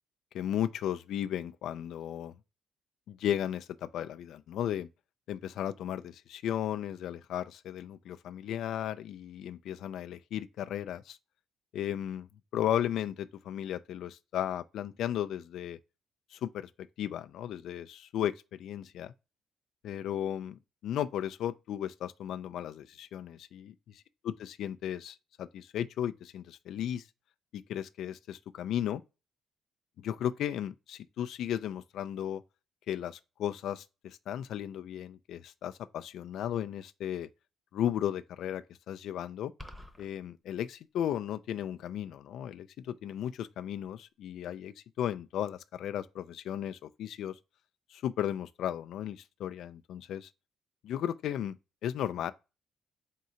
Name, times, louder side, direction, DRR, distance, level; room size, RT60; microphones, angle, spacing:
voice 1, 0.3-2.4 3.1-4.9 5.3-11.2 11.7-12.3 12.5-15.8 16.3-16.7 17.0-19.1 19.8-23.7 24.2-27.1 27.5-29.0 30.0-32.4 32.9-37.3 37.7-39.5 40.0-47.4 47.9-50.3 50.8-51.6 51.8-52.3, left 10 dB, 75° left, 0.3 m, -35 dB
sound 1, 39.6-40.1, equal, 10° right, 0.9 m, -46 dB
3.7 x 2.6 x 4.3 m
cardioid pair, 90°, 0 cm